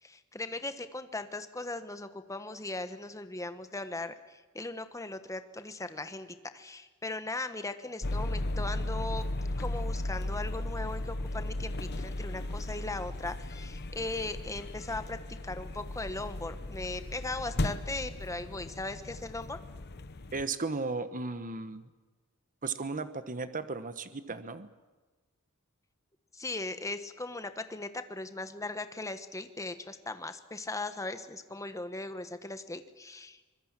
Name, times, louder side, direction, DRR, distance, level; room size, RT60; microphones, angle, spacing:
voice 1, 0.0-9.2 9.6-19.6 26.3-33.4, left 2 dB, 15° left, 10 dB, 1.2 m, -38 dB
sound 1, 8.0-20.4, left 1 dB, 50° left, 1.0 m, -36 dB
voice 2, 20.3-21.9 22.6-24.7, right 3 dB, 40° right, 12 dB, 1.1 m, -35 dB
24.5 x 21.5 x 7.5 m, 1.2 s
head